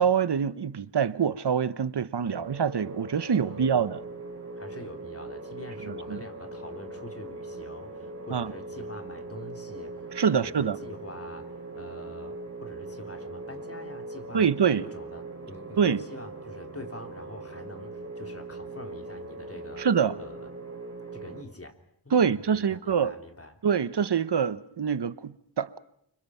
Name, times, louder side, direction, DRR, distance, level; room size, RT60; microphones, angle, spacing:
voice 1, 0.0-4.0 5.9-6.2 8.3-8.5 10.1-10.8 14.3-14.8 15.8-16.0 19.8-20.2 22.1-23.1 23.6-25.8, right 7 dB, 65° right, 1.1 m, -25 dB
sound 1, 2.3-21.4, right 2 dB, 35° right, 5.6 m, -41 dB
voice 2, 4.6-14.5 14.8-19.9 20.2-20.5 21.1-21.8 22.0-23.6, left 1 dB, 30° left, 3.3 m, -45 dB
30.0 x 25.0 x 5.7 m
wide cardioid pair, 55°, 43 cm